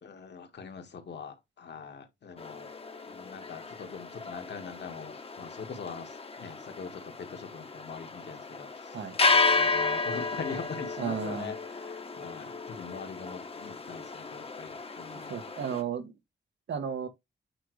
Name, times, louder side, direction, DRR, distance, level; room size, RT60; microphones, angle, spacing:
voice 1, 0.0-2.7 3.0-15.4, left 5 dB, 65° left, 1.9 m, -43 dB
sound 1, 2.4-15.8, left 4 dB, 30° left, 1.1 m, -33 dB
voice 2, 11.0-11.5 15.3-16.1 16.7-17.1, right 7 dB, 75° right, 1.3 m, -33 dB
8.7 x 3.9 x 3.2 m
cardioid pair, 100°, 19 cm